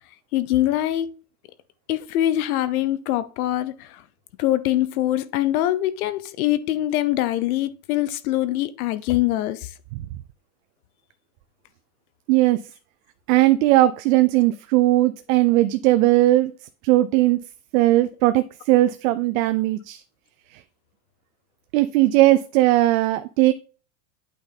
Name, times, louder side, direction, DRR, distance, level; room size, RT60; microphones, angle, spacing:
voice 1, 0.3-1.1 1.9-4.0 4.4-9.7, left 14 dB, 75° left, 1.0 m, -23 dB
voice 2, 12.3-12.6 13.3-16.5 16.8-17.4 17.7-20.0 20.5-20.6 21.7-23.5, right 16 dB, 65° right, 0.7 m, -18 dB
8.7 x 5.3 x 4.0 m
supercardioid pair, 145°, 44 cm